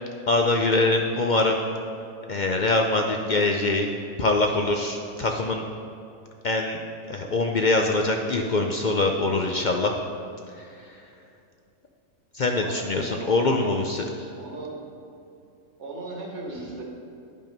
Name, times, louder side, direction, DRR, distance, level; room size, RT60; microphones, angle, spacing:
voice 1, 0.3-1.6 2.3-3.9 4.2-5.6 6.4-6.8 7.1-10.0 10.6-11.0 12.3-14.3, left 2 dB, 60° left, 2 dB, 0.5 m, -23 dB
voice 2, 12.5-13.3 13.6-13.7 14.4-14.9 15.8-16.8, right 2 dB, 60° right, -2 dB, 1.8 m, -37 dB
11.0 x 5.5 x 5.2 m, 2.5 s
omnidirectional pair, 1.4 m